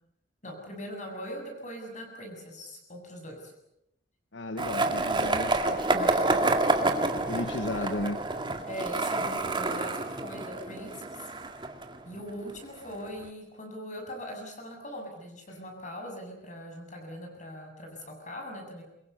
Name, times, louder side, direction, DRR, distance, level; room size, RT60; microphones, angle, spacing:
voice 1, 0.4-3.5 8.7-11.0 12.0-18.8, equal, 45° left, 7.4 m, -41 dB
voice 2, 4.3-6.3 7.2-8.2 15.5-15.6, left 2 dB, 80° left, 1.3 m, -35 dB
Skateboard, 4.6-12.5, right 2 dB, 25° right, 2.1 m, -28 dB
24.5 x 22.5 x 8.1 m
head